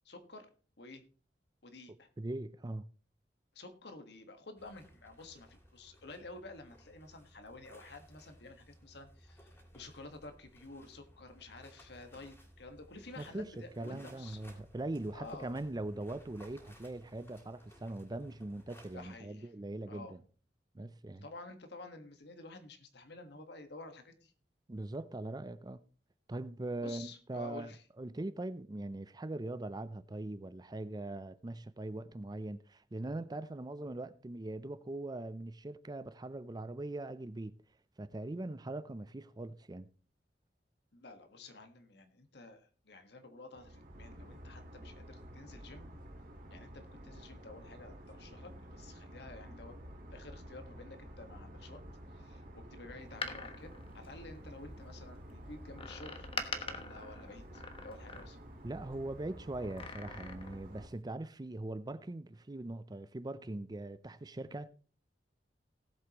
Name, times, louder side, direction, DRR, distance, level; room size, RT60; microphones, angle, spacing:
voice 1, 0.0-0.5 0.8-1.0 1.6-2.1 3.5-14.4 15.1-15.5 18.9-19.5 19.9-20.2 21.2-24.3 26.8-27.8 40.9-45.9 46.5-49.7 50.1-51.8 52.1-58.4, left 2 dB, 65° left, 1.6 m, -51 dB
voice 2, 2.2-2.9 13.2-13.5 13.8-20.2 20.7-21.3 24.7-25.8 26.3-27.7 28.0-37.6 38.0-39.9 58.6-64.7, right 2 dB, 25° right, 0.5 m, -41 dB
sound 1, 4.6-19.2, equal, 15° left, 3.1 m, -60 dB
sound 2, 43.5-60.9, equal, 55° right, 2.1 m, -51 dB
Door, 53.0-54.8 55.8-58.6 59.6-60.7 61.0-61.1, left 4 dB, 30° left, 1.2 m, -44 dB
18.0 x 7.9 x 3.0 m
head